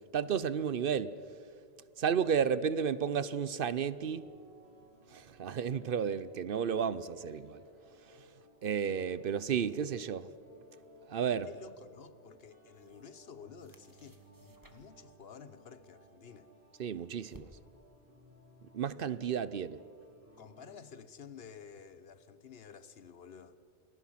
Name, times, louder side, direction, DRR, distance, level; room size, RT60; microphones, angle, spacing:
voice 1, 0.1-1.2 2.0-4.3 5.1-7.6 8.1-8.3 8.6-10.3 11.1-11.5 16.8-17.5 18.7-19.8, right 7 dB, 60° right, 0.9 m, -32 dB
sound 1, 3.9-20.8, equal, 90° right, 6.5 m, -61 dB
sound 2, 11.3-11.5 12.5-13.3 13.5-15.1 16.3-17.9, right 1 dB, 20° right, 1.7 m, -60 dB
voice 2, 11.5-16.5 20.4-23.6, left 6 dB, 70° left, 1.2 m, -52 dB
29.0 x 21.0 x 5.8 m
omnidirectional pair, 1.1 m